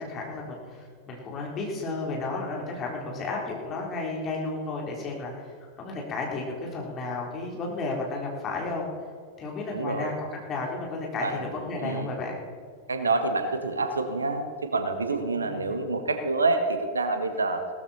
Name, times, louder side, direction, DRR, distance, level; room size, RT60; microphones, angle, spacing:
voice 1, 0.0-5.5 5.8-8.9 9.4-12.4 15.4-15.8, left 3 dB, 30° left, -1 dB, 3.6 m, -33 dB
voice 2, 9.7-10.1 11.2-11.4 11.8-12.1 12.9-17.6, right 3 dB, 75° right, 8 dB, 1.3 m, -27 dB
17.0 x 13.5 x 4.3 m, 2.1 s
figure-of-eight pair, 90°, 0 cm